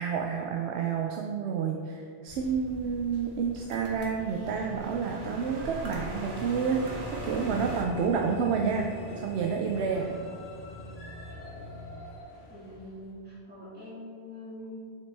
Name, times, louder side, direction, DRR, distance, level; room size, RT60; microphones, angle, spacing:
voice 1, 0.0-10.1, right 6 dB, 85° right, 2 dB, 0.8 m, -29 dB
sound 1, 2.3-7.8, right 1 dB, 55° right, 1.1 m, -40 dB
sound 2, 6.8-13.1, left 1 dB, 85° left, 1.4 m, -47 dB
sound 3, 6.9-12.0, left 1 dB, 65° left, 1.6 m, -45 dB
voice 2, 12.5-14.8, left 1 dB, 10° right, -9 dB, 1.7 m, -44 dB
7.2 x 5.9 x 3.3 m, 2.2 s
omnidirectional pair, 1.1 m